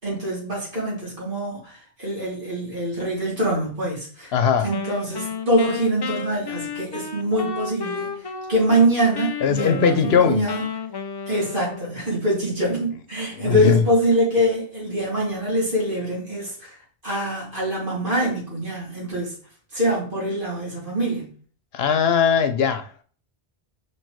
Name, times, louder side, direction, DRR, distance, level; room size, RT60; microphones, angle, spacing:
voice 1, 0.0-4.3 4.6-10.6 11.3-16.8 17.0-19.4 19.7-21.3, right 1 dB, 55° right, 3.3 m, -24 dB
voice 2, 4.3-4.7 9.4-10.4 13.3-13.8 21.7-23.0, left 7 dB, 75° left, 1.0 m, -20 dB
Wind instrument woodwind instrument, 4.7-8.9 9.1-12.1, left 6 dB, 35° left, 0.4 m, -32 dB
5.1 x 4.5 x 4.6 m
omnidirectional pair, 1.0 m